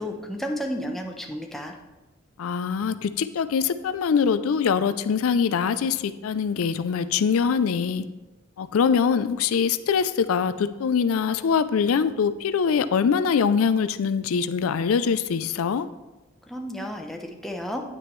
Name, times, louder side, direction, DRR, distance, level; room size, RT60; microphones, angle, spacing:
voice 1, 0.0-1.7 16.5-17.8, equal, ahead, 1 dB, 0.7 m, -32 dB
voice 2, 2.4-8.0 8.6-15.9, left 6 dB, 80° left, 13 dB, 0.4 m, -23 dB
9.2 x 9.1 x 3.1 m, 1.1 s
head